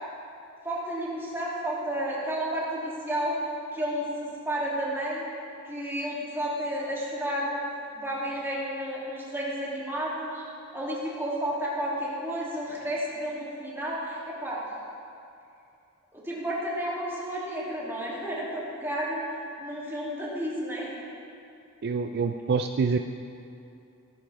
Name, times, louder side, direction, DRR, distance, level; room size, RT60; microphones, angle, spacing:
voice 1, 0.6-3.4 3.7-5.3 5.6-7.6 7.9-10.4 10.7-14.6 16.1-19.2 19.6-20.9, equal, 10° right, -7 dB, 2.9 m, -31 dB
voice 2, 21.8-23.0, right 5 dB, 50° right, 6 dB, 0.4 m, -26 dB
18.5 x 11.0 x 3.5 m, 2.6 s
head